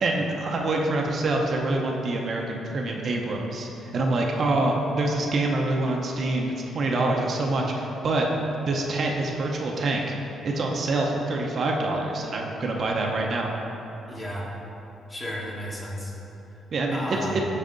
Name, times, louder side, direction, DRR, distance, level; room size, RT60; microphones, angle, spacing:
voice 1, 0.0-8.3 8.6-10.0 10.4-13.5 16.7-17.4, right 2 dB, 50° right, 0 dB, 0.7 m, -26 dB
voice 2, 14.1-14.5 15.1-16.2 16.5-16.6 16.9-17.4, equal, 20° left, -4 dB, 1.4 m, -33 dB
9.0 x 4.1 x 3.9 m, 2.9 s
cardioid pair, 90°, 0 cm